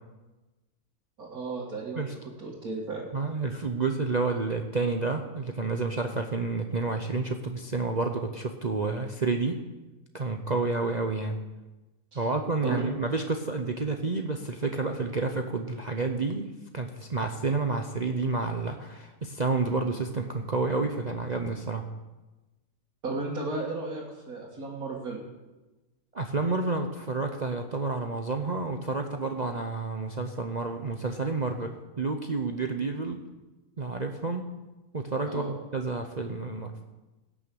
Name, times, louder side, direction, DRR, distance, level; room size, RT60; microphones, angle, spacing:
voice 1, 1.2-3.0 12.1-12.3 12.6-12.9 23.0-25.2 35.3-35.5, right 3 dB, 70° right, -5 dB, 2.4 m, -34 dB
voice 2, 3.1-9.6 10.1-11.4 12.1-16.5 16.7-21.8 26.1-33.2 33.8-34.4 34.9-36.7, right 3 dB, 40° right, 4 dB, 0.7 m, -30 dB
17.5 x 6.3 x 6.9 m, 1.1 s
omnidirectional pair, 1.6 m